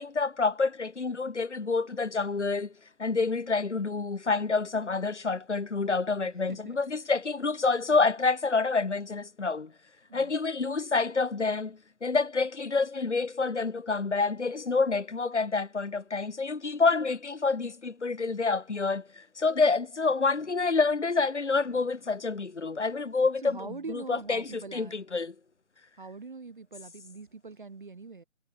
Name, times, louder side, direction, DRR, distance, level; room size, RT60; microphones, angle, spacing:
voice 1, 0.0-2.7 3.0-9.7 10.1-23.6 23.9-25.3, left 4 dB, 55° left, 1.5 m, -28 dB
voice 2, 5.9-6.8 10.1-10.3 23.4-25.0 26.0-28.2, right 4 dB, 35° right, 1.5 m, -43 dB
figure-of-eight pair, 155°, 41 cm